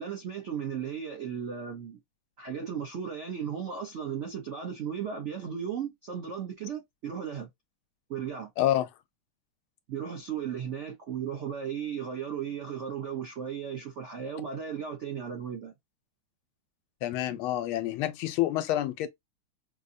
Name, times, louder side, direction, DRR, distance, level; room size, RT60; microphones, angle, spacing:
voice 1, 0.0-2.0 2.4-7.5 8.1-8.5 9.9-15.7, right 8 dB, 70° right, 0.6 m, -35 dB
voice 2, 8.6-8.9 17.0-19.1, left 13 dB, 80° left, 1.4 m, -28 dB
5.1 x 2.1 x 2.6 m
omnidirectional pair, 2.3 m